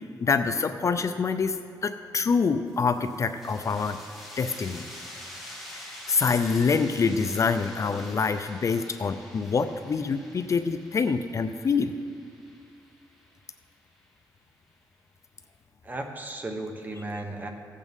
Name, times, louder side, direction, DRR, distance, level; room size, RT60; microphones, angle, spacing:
voice 1, 0.2-4.0 4.4-4.8 5.7-12.0, left 5 dB, 40° left, 9 dB, 0.4 m, -26 dB
sound 1, 2.7-14.0, left 1 dB, ahead, 2.7 m, -46 dB
voice 2, 15.8-17.5, right 2 dB, 25° right, 3 dB, 1.1 m, -35 dB
15.5 x 8.3 x 3.6 m, 2.4 s
cardioid pair, 100°, 8 cm